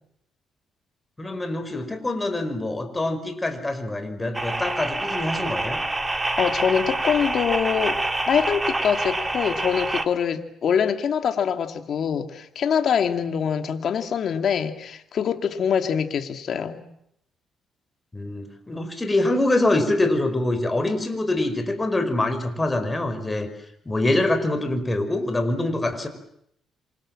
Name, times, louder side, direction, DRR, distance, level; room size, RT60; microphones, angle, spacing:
voice 1, 1.2-5.8 18.1-23.5 23.8-26.1, left 2 dB, 20° left, 8 dB, 5.1 m, -24 dB
sound 1, 4.3-10.1, right 2 dB, 15° right, 2.6 m, -27 dB
voice 2, 6.4-16.9, left 7 dB, 60° left, 7 dB, 2.5 m, -24 dB
27.0 x 26.0 x 7.6 m, 0.75 s
cardioid pair, 90°, 0 cm